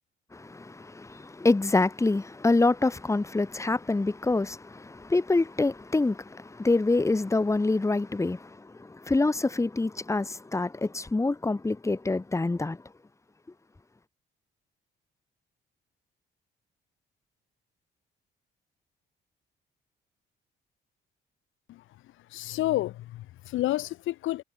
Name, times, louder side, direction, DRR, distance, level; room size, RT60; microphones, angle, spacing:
voice 1, 0.3-12.8, left 3 dB, 15° left, 1.3 m, -26 dB
voice 2, 22.3-24.4, left 15 dB, 85° left, 1.2 m, -30 dB
cardioid pair, 90°, 20 cm